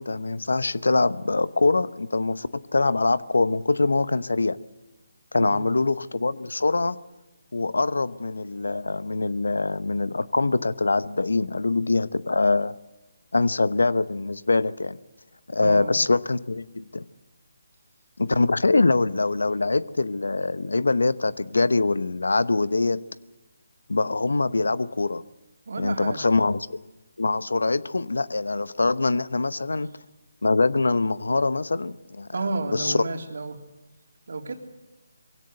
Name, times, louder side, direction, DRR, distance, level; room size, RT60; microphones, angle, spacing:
voice 1, 0.0-4.6 5.3-7.0 7.5-12.7 13.3-15.0 15.5-17.0 18.2-23.0 23.9-25.2 25.8-26.8 27.2-29.9 30.4-32.3 32.7-33.0, left 3 dB, 80° left, 16 dB, 0.9 m, -23 dB
voice 2, 5.3-5.7 15.6-15.9 25.7-26.3 32.3-33.6 34.3-34.6, right 3 dB, 65° right, 3 dB, 3.2 m, -31 dB
22.5 x 17.0 x 7.9 m, 1.1 s
figure-of-eight pair, 155°, 0 cm